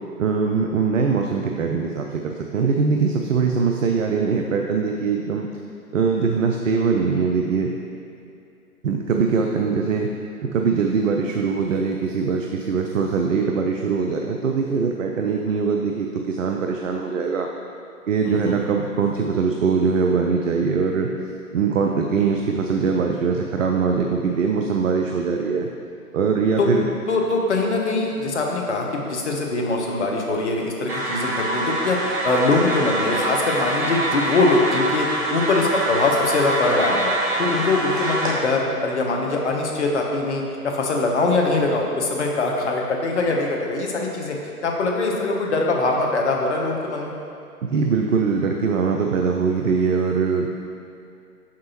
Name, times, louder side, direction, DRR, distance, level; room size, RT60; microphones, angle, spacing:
voice 1, 0.2-5.5 5.9-7.7 8.8-10.1 10.4-17.5 18.1-21.1 21.5-25.7 26.1-26.9 47.6-50.5, right 5 dB, 60° right, 2 dB, 0.5 m, -22 dB
voice 2, 18.2-18.6 26.6-26.7 27.1-37.1 37.4-44.4 44.6-47.1, left 3 dB, 45° left, 0 dB, 0.9 m, -22 dB
sound 1, 30.9-38.3, right 1 dB, 35° right, 1.1 m, -25 dB
6.0 x 5.9 x 2.9 m, 2.6 s
figure-of-eight pair, 130°, 46 cm